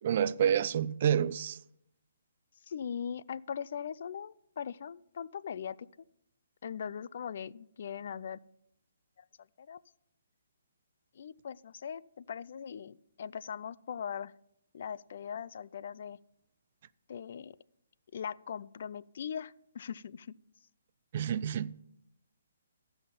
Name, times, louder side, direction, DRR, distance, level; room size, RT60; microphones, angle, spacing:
voice 1, 0.0-1.6 21.1-21.8, right 9 dB, 45° right, 0.4 m, -29 dB
voice 2, 2.7-5.8 6.6-8.4 9.2-9.3 9.6-9.8 11.1-14.3 14.7-16.2 17.1-17.6 18.1-20.3, left 7 dB, 55° left, 0.3 m, -40 dB
15.0 x 5.6 x 5.6 m
hypercardioid pair, 155°, 0 cm